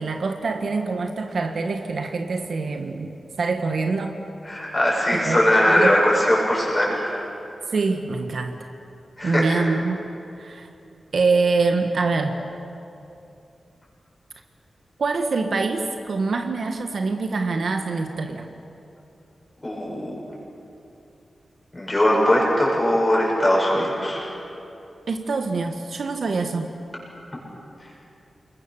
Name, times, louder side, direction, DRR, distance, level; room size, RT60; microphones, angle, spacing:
voice 1, 0.0-3.1 3.4-4.2 5.1-6.2 7.7-8.6 9.2-10.0 10.4-10.7 11.1-12.3 15.0-18.5 25.1-26.7, right 4 dB, 60° right, 5 dB, 1.5 m, -25 dB
voice 2, 4.4-7.1 9.2-9.5 19.6-20.2 21.7-24.2 27.8-27.9, left 1 dB, 15° left, -4 dB, 8.0 m, -20 dB
29.0 x 22.5 x 7.1 m, 2.7 s
wide cardioid pair, 170°, 0 cm